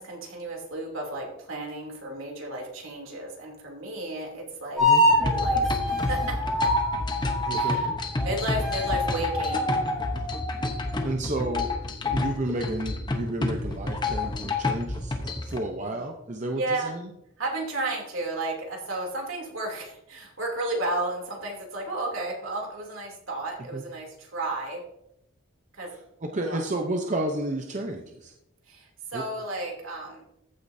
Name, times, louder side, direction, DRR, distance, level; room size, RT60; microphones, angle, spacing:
voice 1, 0.0-4.8 5.2-6.7 7.5-7.9 8.2-9.7 15.8-16.0 16.5-16.9 17.4-24.8 25.7-25.9 26.4-26.6 28.7-30.2, right 2 dB, 70° right, 0 dB, 2.9 m, -33 dB
sound 1, 4.8-8.3 8.5-11.0, left 1 dB, ahead, 4.2 m, -26 dB
sound 2, 5.1-15.6, left 2 dB, 20° left, 0.8 m, -30 dB
voice 2, 7.4-7.8 11.0-11.7 12.1-17.1 23.7-23.8 25.9-28.3 29.1-29.2, right 1 dB, 35° right, 3 dB, 0.7 m, -31 dB
14.5 x 8.7 x 2.7 m, 0.83 s
head